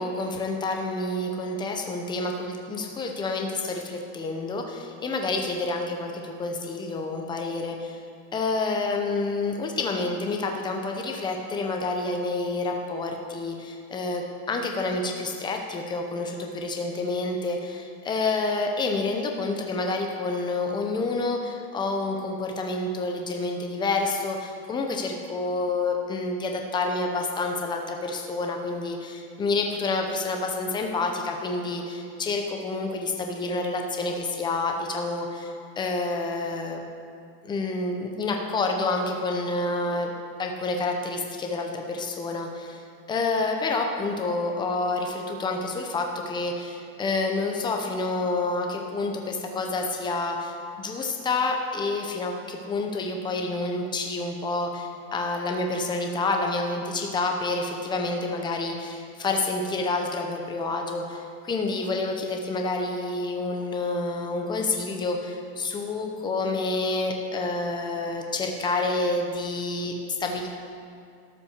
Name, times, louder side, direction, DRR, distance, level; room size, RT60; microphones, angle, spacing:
voice 1, 0.0-8.0 8.3-14.2 14.5-36.8 37.4-40.1 40.4-42.8 43.1-70.5, left 3 dB, 10° left, 2 dB, 0.6 m, -28 dB
12.5 x 5.9 x 6.5 m, 2.5 s
supercardioid pair, 165°, 45 cm